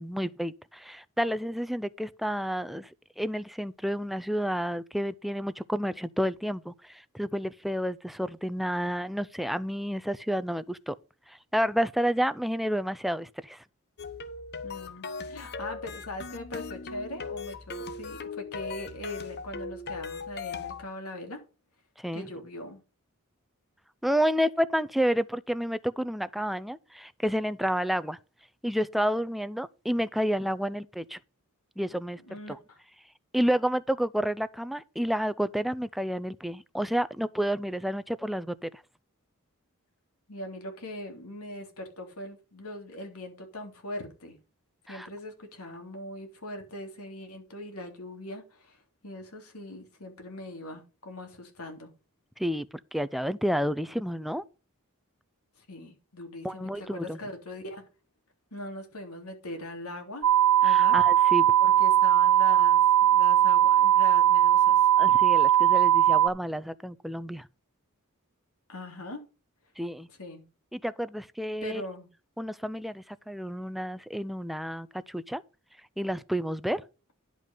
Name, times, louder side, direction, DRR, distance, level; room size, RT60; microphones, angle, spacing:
voice 1, 0.0-2.9 3.2-10.9 11.3-13.6 22.0-22.3 24.0-28.2 28.6-31.2 31.8-32.2 32.5-32.6 33.3-38.8 44.9-45.1 52.4-54.4 56.4-57.2 60.6-61.5 65.0-67.5 69.8-70.1 70.7-71.8 72.4-75.4 76.0-76.8, equal, ahead, 0.5 m, -30 dB
sound 1, 14.0-20.9, left 4 dB, 50° left, 1.0 m, -38 dB
voice 2, 14.6-21.4 22.1-22.8 32.3-32.8 40.3-44.4 44.9-48.8 49.0-51.9 55.6-57.8 58.5-60.3 60.6-61.0 61.6-64.9 68.7-69.2 70.1-70.5 71.6-72.1, left 1 dB, 80° left, 3.2 m, -41 dB
sound 2, 60.2-66.3, right 11 dB, 70° right, 0.7 m, -20 dB
11.0 x 5.3 x 5.5 m
head